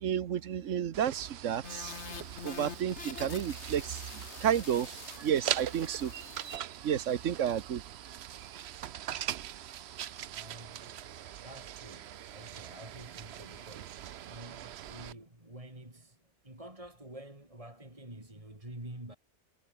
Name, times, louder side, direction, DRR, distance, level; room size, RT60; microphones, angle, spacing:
voice 1, 0.0-2.0 2.4-6.1 6.8-7.8, right 9 dB, 85° right, 1.3 m, -31 dB
sound 1, 0.9-15.1, right 11 dB, 65° right, 0.9 m, -42 dB
sound 2, 1.6-6.6, left 6 dB, 70° left, 1.6 m, -46 dB
voice 2, 10.3-11.0 11.4-19.2, right 1 dB, 25° right, 4.1 m, -49 dB
omnidirectional pair, 1.2 m